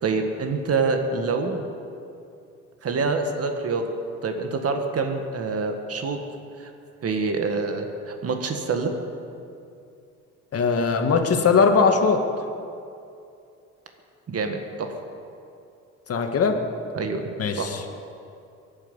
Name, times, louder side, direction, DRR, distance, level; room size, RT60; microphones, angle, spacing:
voice 1, 0.0-1.6 2.8-3.8 4.2-6.2 6.6-6.7 7.0-8.9 14.3-14.9 16.9-17.2 17.6-17.7, right 4 dB, 50° right, 4 dB, 1.9 m, -26 dB
voice 2, 10.5-12.2 16.1-16.5 17.4-17.8, left 5 dB, 50° left, 4 dB, 1.8 m, -20 dB
23.5 x 9.0 x 5.6 m, 2.6 s
cardioid pair, 90°, 30 cm